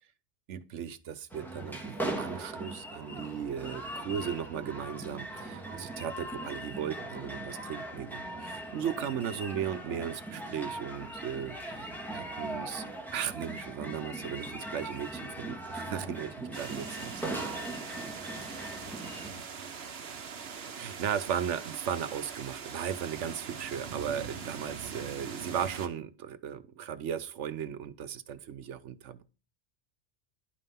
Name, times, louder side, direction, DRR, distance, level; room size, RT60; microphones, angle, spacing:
voice 1, 0.5-12.8 13.1-17.2 20.8-29.2, right 8 dB, 85° right, 1.1 m, -36 dB
sound 1, 1.3-19.3, right 1 dB, ahead, 1.9 m, -40 dB
voice 2, 15.8-16.2 17.3-17.8 18.8-19.6, left 2 dB, 90° left, 6.6 m, -53 dB
sound 2, 16.5-25.9, right 6 dB, 60° right, 1.2 m, -42 dB
10.5 x 5.5 x 5.6 m
omnidirectional pair, 1.2 m